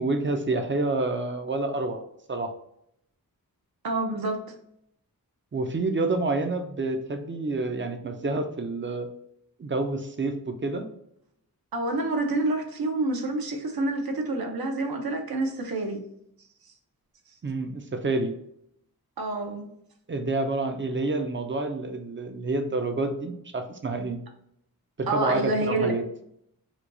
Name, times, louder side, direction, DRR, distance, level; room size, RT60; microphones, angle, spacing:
voice 1, 0.0-2.0 2.3-2.5 5.5-9.1 9.6-10.9 17.4-18.4 20.1-24.2 25.0-26.0, right 2 dB, 35° right, 6 dB, 0.5 m, -28 dB
voice 2, 3.8-4.4 11.7-16.0 19.2-19.6 25.1-25.9, right 2 dB, 75° right, 3 dB, 0.8 m, -27 dB
4.4 x 2.3 x 2.6 m, 0.73 s
wide cardioid pair, 90°, 36 cm